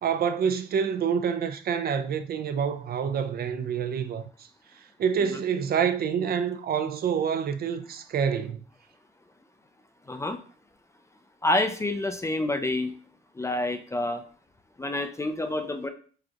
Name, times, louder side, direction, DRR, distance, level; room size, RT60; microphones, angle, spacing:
voice 1, 0.0-4.5 5.0-8.6, right 7 dB, 50° right, 0.4 m, -27 dB
voice 2, 10.1-10.4 11.4-12.9 13.4-14.2 14.8-15.9, left 1 dB, 15° left, 0.3 m, -28 dB
5.1 x 2.3 x 2.8 m
cardioid pair, 90°, 20 cm